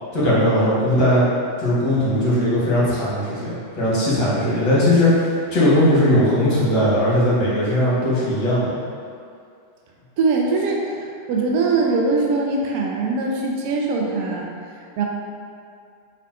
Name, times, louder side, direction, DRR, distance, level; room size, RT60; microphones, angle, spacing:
voice 1, 0.1-1.2 1.6-8.7, left 1 dB, 35° left, -9 dB, 1.2 m, -18 dB
voice 2, 10.2-14.5 15.0-15.1, right 3 dB, 45° right, -1 dB, 0.3 m, -22 dB
3.9 x 2.1 x 2.5 m, 2.4 s
figure-of-eight pair, 90°, 0 cm